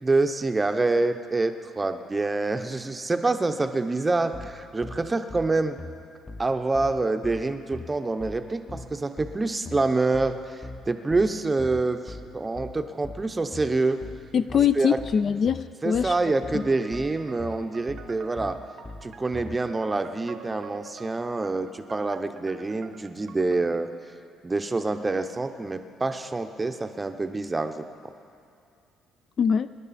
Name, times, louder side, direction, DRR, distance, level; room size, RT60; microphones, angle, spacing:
voice 1, 0.0-5.8 6.4-14.0 14.8-15.0 15.8-18.6 19.0-23.9 24.4-27.8, right 3 dB, 15° right, 7 dB, 0.7 m, -26 dB
sound 1, 4.3-19.6, left 3 dB, 20° left, 0.7 m, -41 dB
voice 2, 14.3-16.1 16.5-16.6 29.4-29.7, left 7 dB, 40° left, 13 dB, 0.3 m, -23 dB
sound 2, 16.6-23.8, right 6 dB, 50° right, 0.8 m, -48 dB
23.5 x 11.0 x 4.2 m, 2.5 s
cardioid pair, 130°, 0 cm